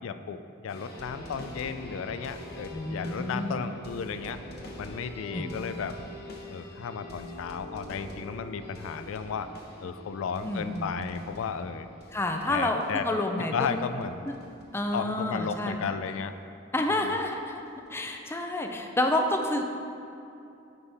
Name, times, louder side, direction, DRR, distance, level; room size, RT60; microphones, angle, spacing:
voice 1, 0.0-4.4 4.8-6.0 6.5-9.5 9.8-11.9 12.5-13.1 13.5-14.2 14.9-16.3, left 6 dB, 80° left, 10 dB, 0.3 m, -34 dB
sound 1, 0.7-15.3 15.7-15.8 16.1-16.2 16.9-17.0 17.3-17.9 18.5-18.6, left 1 dB, 50° left, 1.0 m, -45 dB
voice 2, 2.7-3.7 5.3-5.5 10.4-10.9 12.1-13.8 14.3-14.4 14.7-15.8 16.7-17.6 17.9-19.7, left 1 dB, 10° left, 3 dB, 0.4 m, -29 dB
9.6 x 5.6 x 3.5 m, 2.7 s
head